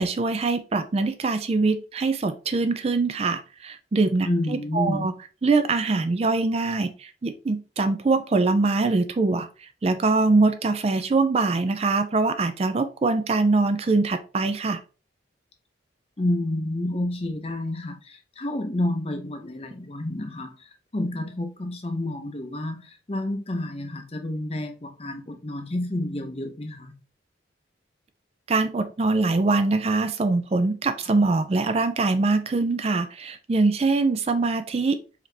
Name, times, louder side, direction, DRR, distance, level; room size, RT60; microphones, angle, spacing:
voice 1, 0.0-5.1 5.4-14.8 28.5-35.0, right 3 dB, 30° right, 0.3 m, -23 dB
voice 2, 4.2-5.1 16.2-27.0, left 1 dB, 30° left, 0.6 m, -29 dB
4.8 x 2.9 x 3.3 m
head